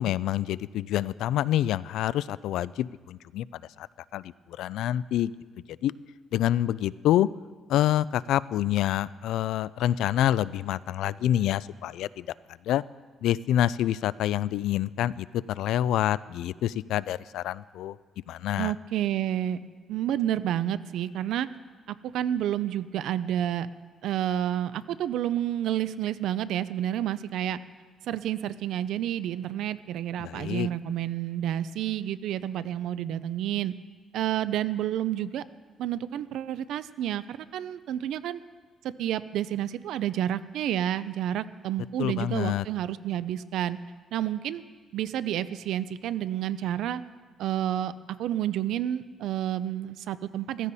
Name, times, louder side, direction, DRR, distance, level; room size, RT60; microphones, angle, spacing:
voice 1, 0.0-3.5 3.8-3.9 4.1-5.3 5.8-5.9 6.3-7.3 7.7-12.3 12.7-12.8 13.2-18.0 18.3-18.7 30.2-30.7 42.0-42.7, left 12 dB, 80° left, 19 dB, 0.3 m, -27 dB
voice 2, 18.6-19.6 19.9-21.5 21.9-23.7 24.0-27.6 28.1-33.7 34.1-35.4 35.8-38.4 38.8-43.8 44.1-44.6 44.9-47.0 47.4-47.9 48.2-50.7, right 11 dB, 70° right, 15 dB, 0.5 m, -30 dB
15.0 x 15.0 x 4.2 m, 1.4 s
cardioid pair, 175°, 0 cm